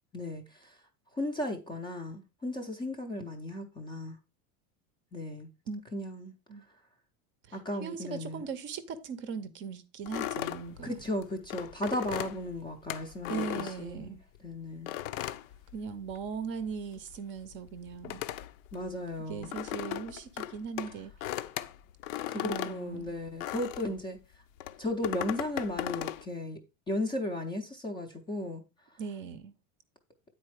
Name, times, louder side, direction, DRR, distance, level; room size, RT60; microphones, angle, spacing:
voice 1, 0.1-0.7 1.1-4.2 5.1-5.5 5.9-6.3 7.5-8.5 10.8-15.0 18.7-19.5 22.3-24.2 24.8-26.6 26.9-28.6, left 1 dB, 10° left, 0.5 m, -35 dB
voice 2, 7.5-10.9 13.3-14.2 15.7-18.2 19.3-21.1 22.3-23.1 29.0-29.5, right 6 dB, 30° right, 0.6 m, -39 dB
sound 1, 10.1-14.4 14.9-16.3 16.6-24.0 24.6-26.2, left 13 dB, 75° left, 0.7 m, -37 dB
9.1 x 4.3 x 4.7 m
supercardioid pair, 170°, 40 cm